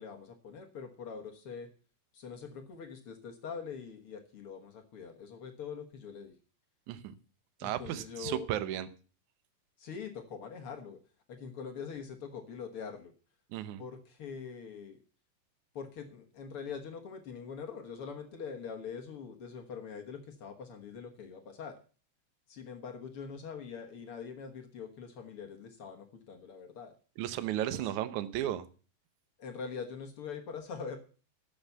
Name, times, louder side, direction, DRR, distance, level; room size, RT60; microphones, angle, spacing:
voice 1, 0.0-1.7 2.1-6.3 7.6-8.5 9.8-11.0 11.3-13.1 13.8-15.0 15.7-21.8 22.5-26.9 27.7-27.8 29.4-31.0, left 6 dB, 60° left, 4 dB, 1.5 m, -43 dB
voice 2, 7.6-8.9 13.5-13.8 27.2-28.7, right 12 dB, 70° right, 13 dB, 1.9 m, -34 dB
12.0 x 7.1 x 7.9 m, 0.38 s
omnidirectional pair, 4.4 m